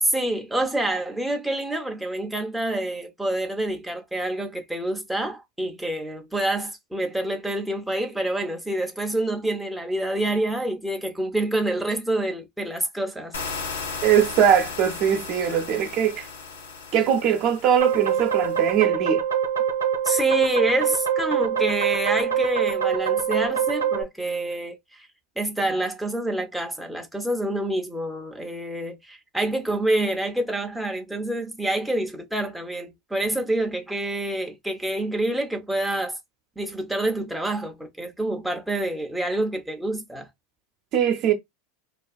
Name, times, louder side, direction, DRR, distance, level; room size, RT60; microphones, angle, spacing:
voice 1, 0.0-13.4 20.0-25.1 25.4-36.2 36.6-40.3, right 1 dB, 5° right, 0.5 m, -27 dB
sound 1, 13.3-18.8, left 5 dB, 85° left, 0.6 m, -36 dB
voice 2, 14.0-16.3 16.9-19.2 40.9-41.3, right 9 dB, 50° right, 0.6 m, -21 dB
sound 2, 17.8-24.0, right 8 dB, 90° right, 0.6 m, -24 dB
2.4 x 2.3 x 2.3 m
hypercardioid pair, 95°, 0 cm